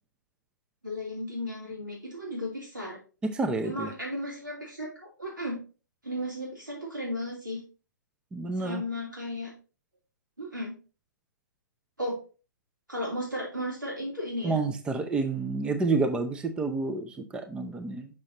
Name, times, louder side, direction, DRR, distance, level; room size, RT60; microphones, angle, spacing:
voice 1, 0.8-3.0 3.6-5.6 6.0-7.6 8.6-9.5 10.4-10.7 12.0-12.2 12.9-14.6, left 1 dB, 90° right, -4 dB, 2.9 m, -34 dB
voice 2, 3.2-3.9 8.3-8.8 14.4-18.1, right 3 dB, 10° right, 7 dB, 0.5 m, -29 dB
6.2 x 6.0 x 2.9 m, 0.34 s
figure-of-eight pair, 120°, 10 cm